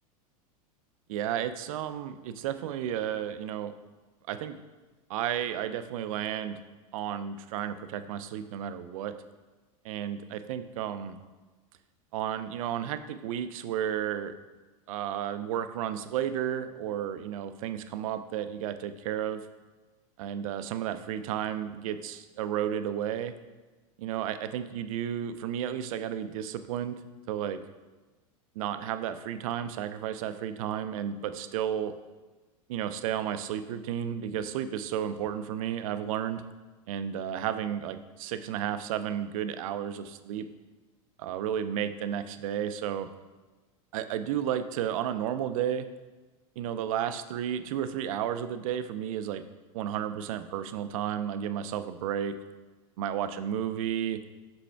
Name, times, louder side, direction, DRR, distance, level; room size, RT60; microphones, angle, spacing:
voice 1, 1.1-3.7 4.3-4.6 5.1-6.6 6.9-9.1 9.8-11.2 12.1-14.3 14.9-19.4 20.2-23.3 24.0-27.0 27.3-27.6 28.6-32.0 32.7-36.4 36.9-40.5 41.2-43.1 43.9-45.9 46.6-49.4 49.7-52.4 53.0-54.2, right 10 dB, 70° right, 11 dB, 0.5 m, -32 dB
5.5 x 5.1 x 3.3 m, 1.3 s
hypercardioid pair, 105°, 18 cm